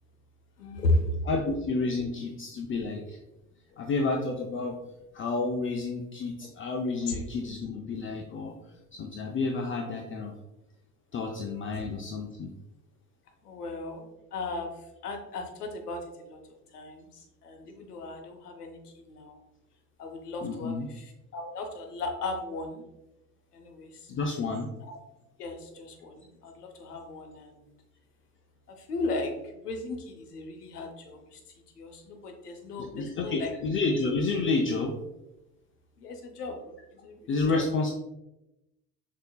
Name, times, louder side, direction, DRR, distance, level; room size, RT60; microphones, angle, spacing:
voice 1, 0.6-1.5 7.1-7.2 11.7-11.9 13.4-16.4 16.7-19.4 20.0-22.8 23.5-24.1 24.8-24.9 25.4-27.7 28.7-31.4 31.8-33.5 36.0-37.7, left 2 dB, 85° left, 5 dB, 0.8 m, -35 dB
voice 2, 1.3-3.2 3.8-4.8 5.1-8.5 8.9-10.4 11.1-12.5 20.4-20.9 24.1-24.7 32.9-34.9 37.3-37.9, left 3 dB, 30° left, 2 dB, 0.5 m, -30 dB
6.4 x 2.8 x 2.3 m, 0.94 s
hypercardioid pair, 65°, 46 cm